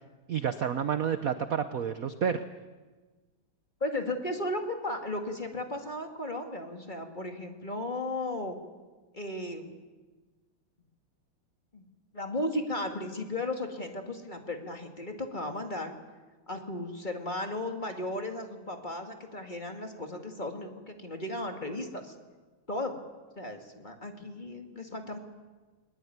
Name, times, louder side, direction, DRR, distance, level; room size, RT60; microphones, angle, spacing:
voice 1, 0.3-2.4, right 8 dB, 55° right, 10 dB, 1.1 m, -29 dB
voice 2, 3.8-8.6 9.1-9.7 11.7-11.8 12.1-15.9 16.5-22.1 22.7-23.0 23.4-25.2, left 1 dB, 20° left, 4 dB, 2.4 m, -35 dB
21.5 x 21.0 x 9.5 m, 1.3 s
omnidirectional pair, 2.3 m